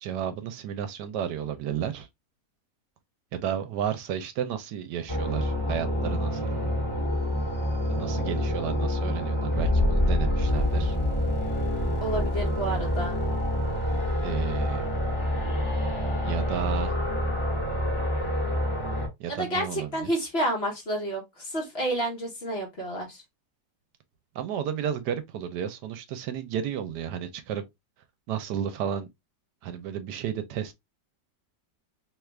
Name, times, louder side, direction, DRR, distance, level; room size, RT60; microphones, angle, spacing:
voice 1, 0.0-2.1 3.3-6.5 7.9-11.0 14.2-14.9 16.2-16.9 19.2-20.1 24.3-27.6 28.3-29.1 29.6-30.7, right 9 dB, 80° right, 1.2 m, -32 dB
sound 1, 5.1-19.1, equal, 20° left, 1.1 m, -27 dB
voice 2, 12.0-13.2 19.3-23.2, right 1 dB, 45° left, 1.1 m, -30 dB
3.1 x 2.4 x 3.2 m
omnidirectional pair, 1.9 m